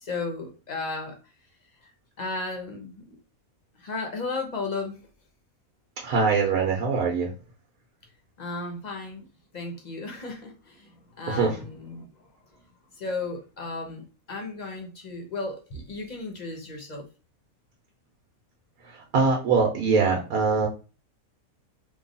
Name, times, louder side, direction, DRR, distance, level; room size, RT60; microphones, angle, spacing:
voice 1, 0.0-1.2 1.8-1.9 2.2-3.2 3.8-5.0 8.4-9.3 9.5-12.3 12.9-17.1, left 3 dB, 35° left, 0.8 m, -34 dB
voice 2, 6.0-7.3 11.3-11.6 18.8-20.7, right 4 dB, 80° right, 1.3 m, -23 dB
3.2 x 2.3 x 3.9 m
omnidirectional pair, 1.5 m